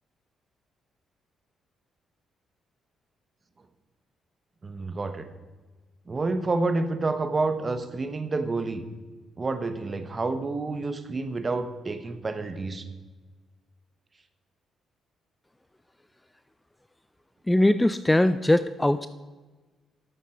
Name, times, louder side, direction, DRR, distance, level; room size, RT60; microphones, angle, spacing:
voice 1, 4.6-5.3 6.1-8.8 9.4-12.8, right 3 dB, 30° right, 9 dB, 1.1 m, -29 dB
voice 2, 17.5-19.1, left 1 dB, 10° left, 13 dB, 0.4 m, -21 dB
11.5 x 8.2 x 4.5 m, 1.3 s
cardioid pair, 90°, 0 cm